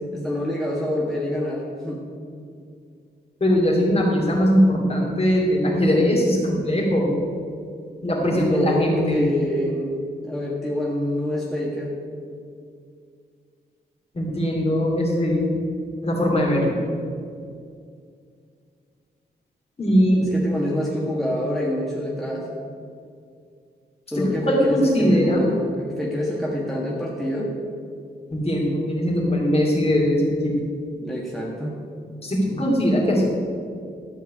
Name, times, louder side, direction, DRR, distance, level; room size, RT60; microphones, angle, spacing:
voice 1, 0.1-2.0 8.3-9.9 10.2-11.9 20.2-22.5 24.1-27.5 31.0-31.8, left 1 dB, ahead, -4 dB, 1.5 m, -26 dB
voice 2, 3.4-7.1 8.0-9.2 14.1-15.5 16.0-16.8 19.8-20.2 24.2-25.4 28.3-30.6 32.2-33.2, equal, 35° left, -3 dB, 2.7 m, -20 dB
13.0 x 4.5 x 8.4 m, 2.3 s
wide cardioid pair, 115°, 18 cm